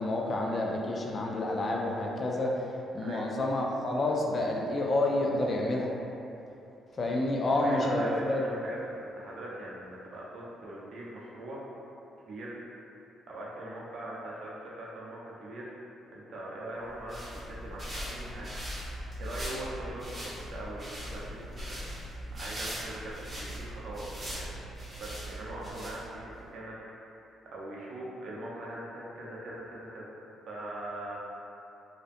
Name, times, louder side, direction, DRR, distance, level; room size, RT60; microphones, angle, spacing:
voice 1, 0.0-2.5 2.9-5.9 6.9-8.4, left 2 dB, 40° left, -2 dB, 0.3 m, -29 dB
voice 2, 7.5-11.6 12.2-12.6 13.3-15.8 16.1-18.5 19.2-21.8 22.3-24.6 25.0-26.8 27.0-30.2 30.5-31.2, right 1 dB, 65° right, -5 dB, 0.5 m, -41 dB
sound 1, 16.9-26.4, equal, 30° right, 0.8 m, -40 dB
2.6 x 2.1 x 2.5 m, 2.9 s
cardioid pair, 90°, 0 cm